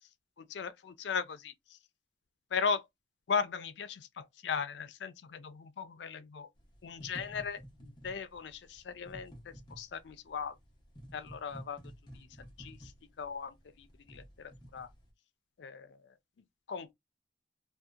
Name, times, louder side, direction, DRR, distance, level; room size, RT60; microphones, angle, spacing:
voice 1, 0.5-1.5 2.5-2.8 3.3-6.5 6.8-9.3 9.8-10.5 11.1-11.8 12.1-12.3 12.6-12.8 13.2-14.9 15.6-15.9 16.7-16.9, left 6 dB, 80° left, 0.4 m, -37 dB
sound 1, 6.6-15.1, equal, 25° left, 0.6 m, -52 dB
2.7 x 2.1 x 2.3 m
head